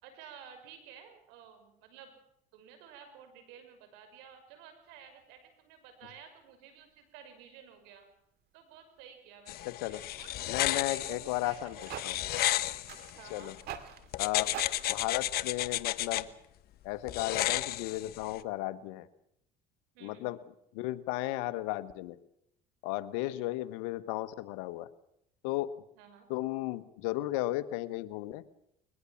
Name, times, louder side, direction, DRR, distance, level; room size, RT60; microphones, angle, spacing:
voice 1, 0.0-2.1 2.5-8.1 8.5-11.7 12.1-12.2 13.2-13.5 19.9-20.3 23.2-23.6 26.0-26.3, right 8 dB, 80° right, 8 dB, 6.0 m, -53 dB
sound 1, 5.0-5.1 6.6-6.9 9.0-9.1 9.4-9.5 9.7-10.0 10.7-10.8 11.4-14.9, right 10 dB, 65° right, 2.4 m, -46 dB
sound 2, 9.5-13.6 14.1-16.2 17.1-18.4, left 14 dB, 60° left, 1.1 m, -33 dB
voice 2, 9.6-10.0 10.5-12.2 13.3-13.6 14.2-14.6 14.9-16.3 16.8-19.1 20.0-20.4 20.7-22.2 22.8-24.9 25.4-25.8 26.3-28.4, left 16 dB, 80° left, 13 dB, 1.4 m, -34 dB
22.0 x 21.0 x 7.2 m, 0.74 s
supercardioid pair, 90°, 18 cm